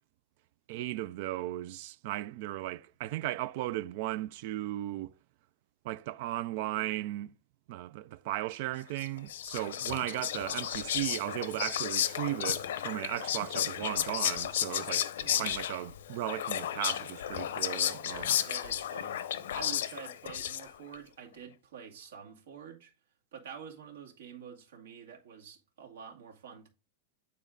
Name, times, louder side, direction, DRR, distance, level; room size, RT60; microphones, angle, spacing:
voice 1, 0.7-5.1 5.8-7.3 7.7-15.1 15.4-18.4, right 15 dB, 45° right, 0.3 m, -36 dB
Whispering, 9.0-20.9, left 10 dB, 80° left, 0.7 m, -33 dB
voice 2, 18.4-22.9 23.3-26.7, right 7 dB, 85° right, 2.1 m, -48 dB
9.2 x 4.2 x 3.8 m
supercardioid pair, 175°, 0 cm